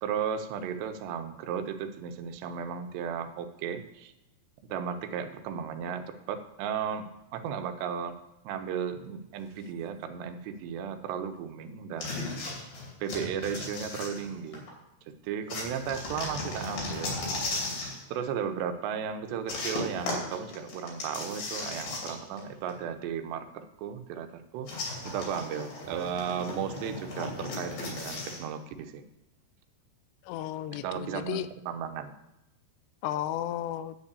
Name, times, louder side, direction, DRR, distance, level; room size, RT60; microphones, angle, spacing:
voice 1, 0.0-4.1 4.6-8.2 8.4-12.3 12.6-12.7 13.0-14.7 15.2-17.2 17.4-17.6 18.1-29.0 30.7-32.1, right 7 dB, 85° right, 8 dB, 3.0 m, -35 dB
sound 1, 12.0-14.7 15.5-18.0 19.5-22.4 22.7-22.8 24.7-28.4, left 2 dB, 60° left, 4.4 m, -36 dB
voice 2, 30.3-31.5 33.0-34.0, left 12 dB, 85° left, 13 dB, 2.7 m, -33 dB
10.0 x 5.4 x 8.3 m, 0.92 s
omnidirectional pair, 4.8 m